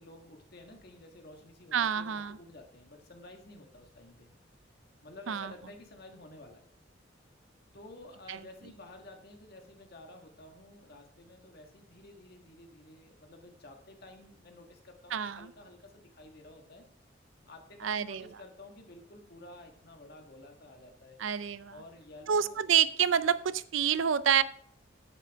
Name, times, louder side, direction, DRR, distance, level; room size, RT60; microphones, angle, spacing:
voice 1, 0.0-4.3 5.0-6.7 7.7-16.9 17.5-21.2 21.7-22.6, left 2 dB, 55° left, 4 dB, 1.7 m, -52 dB
voice 2, 1.7-2.4 5.3-5.5 8.3-8.4 15.1-15.5 17.8-18.3 21.2-21.7 22.3-24.4, right 8 dB, 85° right, 16 dB, 0.5 m, -28 dB
10.0 x 8.3 x 3.6 m, 0.63 s
head